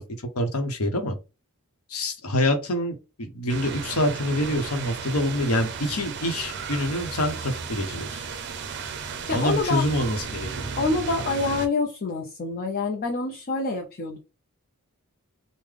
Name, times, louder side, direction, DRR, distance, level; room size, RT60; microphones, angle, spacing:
voice 1, 0.3-1.2 1.9-8.2 9.3-10.7, left 1 dB, 75° left, 0.8 m, -26 dB
sound 1, 3.5-11.7, right 5 dB, 50° right, 0.5 m, -34 dB
voice 2, 9.2-9.9 10.8-14.2, left 3 dB, 40° left, 0.5 m, -26 dB
3.3 x 2.0 x 3.6 m
head